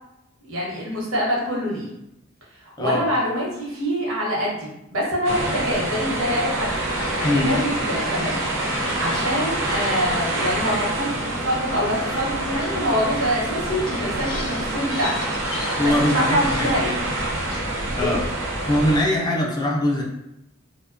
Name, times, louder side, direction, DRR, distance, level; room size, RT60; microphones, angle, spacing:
voice 1, 0.5-1.9 2.6-6.7 7.2-15.1 15.8-17.0 17.9-18.2, equal, 90° right, -5 dB, 0.9 m, -25 dB
sound 1, 5.2-19.0, right 2 dB, 70° right, 0.5 m, -26 dB
sound 2, 5.5-17.6, left 3 dB, 80° left, 0.4 m, -38 dB
voice 2, 7.2-7.6 15.8-16.7 18.0-18.2 18.7-20.0, left 1 dB, 20° left, -1 dB, 0.4 m, -22 dB
2.7 x 2.2 x 2.4 m, 0.87 s
head